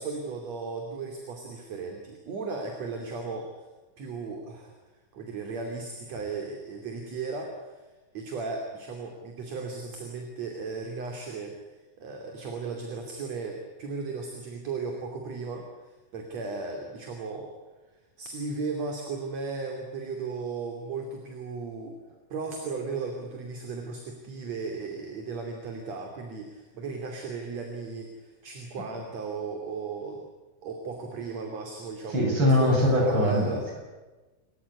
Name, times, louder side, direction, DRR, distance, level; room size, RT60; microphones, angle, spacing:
voice 1, 0.0-3.7 4.0-4.7 5.1-7.8 8.1-11.6 12.0-17.5 18.2-21.9 22.3-30.2 30.6-32.2 32.6-33.7, right 4 dB, 50° right, 3 dB, 3.8 m, -36 dB
voice 2, 32.1-33.8, left 1 dB, 30° right, 0 dB, 8.0 m, -22 dB
28.5 x 15.0 x 9.6 m, 1.2 s
omnidirectional pair, 4.1 m